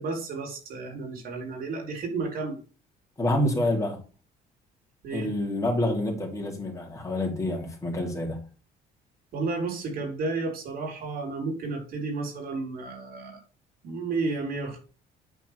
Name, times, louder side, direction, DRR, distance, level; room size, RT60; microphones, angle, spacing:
voice 1, 0.0-2.6 5.0-5.3 9.3-13.4 13.8-14.8, right 3 dB, 65° right, 3.9 m, -32 dB
voice 2, 3.2-4.0 5.1-8.4, left 1 dB, 20° left, 3.1 m, -27 dB
9.2 x 4.6 x 4.6 m
cardioid pair, 110°, 17 cm